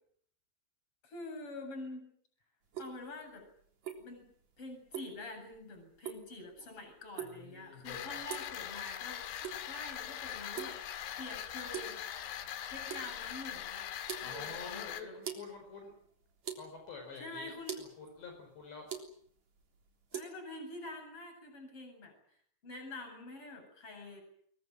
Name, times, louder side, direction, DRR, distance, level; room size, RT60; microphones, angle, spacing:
voice 1, 1.0-2.1 2.8-3.5 4.0-9.2 9.6-10.8 11.2-12.0 12.7-13.9 14.2-15.1 17.2-17.8 20.1-22.1 22.6-24.2, left 2 dB, 25° left, 5 dB, 8.8 m, -46 dB
sound 1, 2.6-20.2, right 7 dB, 40° right, 4.2 m, -47 dB
voice 2, 7.2-8.2 14.2-15.9 16.6-17.5 17.8-18.9, left 4 dB, 60° left, 3 dB, 6.9 m, -48 dB
sound 2, 7.9-15.0, left 11 dB, 75° left, 4.3 m, -42 dB
25.5 x 23.0 x 7.5 m, 0.62 s
omnidirectional pair, 5.8 m